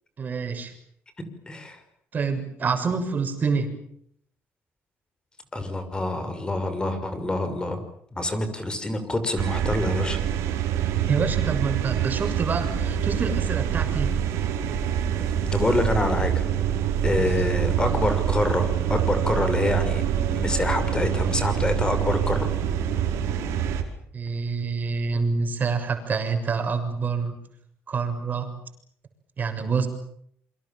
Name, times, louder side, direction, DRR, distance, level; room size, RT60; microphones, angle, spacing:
voice 1, 0.2-0.7 2.1-3.7 11.1-14.2 17.2-17.5 24.1-27.4 27.9-28.5 29.4-29.9, right 5 dB, 40° right, 7 dB, 6.8 m, -27 dB
voice 2, 1.5-1.8 5.5-7.8 8.1-10.2 15.5-16.5 17.0-22.5, left 2 dB, 20° left, 9 dB, 5.9 m, -26 dB
sound 1, 9.4-23.8, right 9 dB, 85° right, 5.0 m, -25 dB
28.0 x 25.0 x 7.5 m, 0.67 s
cardioid pair, 110°, 5 cm